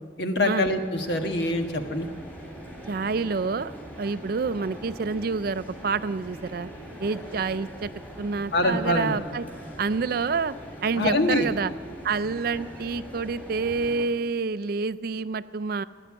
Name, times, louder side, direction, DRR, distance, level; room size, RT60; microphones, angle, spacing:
voice 1, 0.2-2.1 8.5-9.2 11.0-11.5, left 1 dB, 65° left, 5 dB, 1.5 m, -24 dB
sound 1, 1.0-14.1, right 1 dB, 10° left, 3.1 m, -42 dB
voice 2, 2.9-3.7 4.0-6.7 7.0-7.9 8.2-9.4 9.8-10.6 10.8-11.7 12.0-15.8, right 4 dB, 55° right, 15 dB, 0.4 m, -28 dB
17.0 x 10.0 x 8.6 m, 2.1 s
head